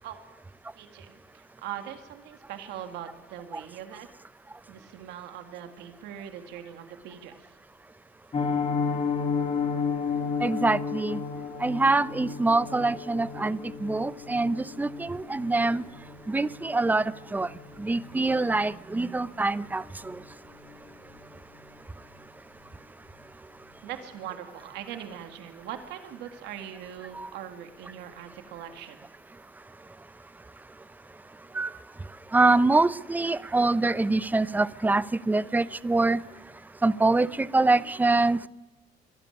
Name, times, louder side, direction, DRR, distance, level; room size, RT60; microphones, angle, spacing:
voice 1, 0.8-4.1 4.7-7.6 23.8-29.0, right 10 dB, 85° right, 7 dB, 1.9 m, -41 dB
Piano, 8.3-19.2 19.5-19.7 20.0-20.2 20.5-20.8 21.1-21.2, left 5 dB, 35° left, 2.2 m, -33 dB
voice 2, 10.4-11.2 11.6-15.8 16.3-17.5 17.8-20.2 27.2-27.3 31.5-31.7 32.3-36.2 36.8-38.5, right 3 dB, 10° right, 17 dB, 0.6 m, -25 dB
23.0 x 12.5 x 9.8 m, 1.1 s
cardioid pair, 110°, 17 cm